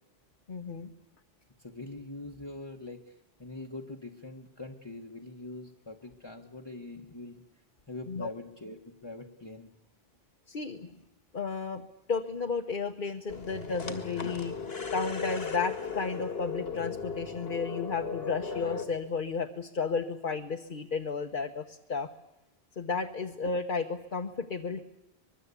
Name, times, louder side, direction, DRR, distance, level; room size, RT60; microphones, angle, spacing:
voice 1, 0.5-0.9 8.1-8.3 10.5-10.9 11.3-11.8 12.1-14.5 14.9-22.1 22.8-24.8, left 4 dB, 55° left, 5 dB, 1.3 m, -33 dB
voice 2, 1.6-7.4 7.9-9.7, left 2 dB, 25° left, 2 dB, 1.3 m, -43 dB
sound 1, 13.3-18.8, left 5 dB, 75° left, 2.2 m, -36 dB
24.5 x 22.0 x 8.3 m, 0.94 s
omnidirectional pair, 1.0 m